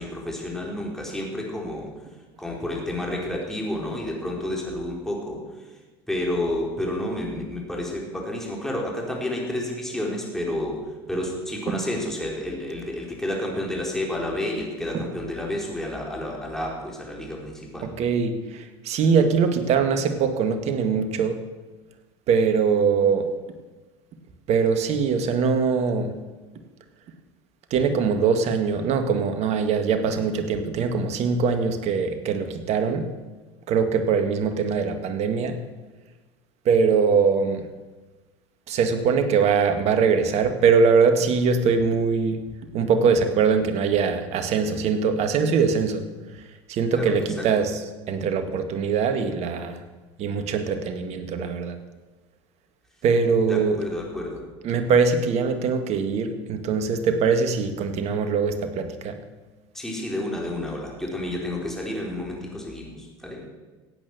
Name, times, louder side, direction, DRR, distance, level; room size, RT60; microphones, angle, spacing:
voice 1, 0.0-1.9 2.4-5.4 6.1-17.9 46.9-47.7 53.4-54.4 59.7-63.5, left 1 dB, 5° left, -2 dB, 4.4 m, -30 dB
voice 2, 17.8-21.4 22.3-23.3 24.5-26.2 27.7-33.1 33.7-35.6 36.7-37.6 38.7-42.4 42.7-46.1 46.7-47.8 48.1-49.8 50.2-51.8 53.0-53.8 54.6-59.2, right 5 dB, 50° right, 8 dB, 1.8 m, -22 dB
15.5 x 8.9 x 6.7 m, 1.2 s
hypercardioid pair, 90°, 14 cm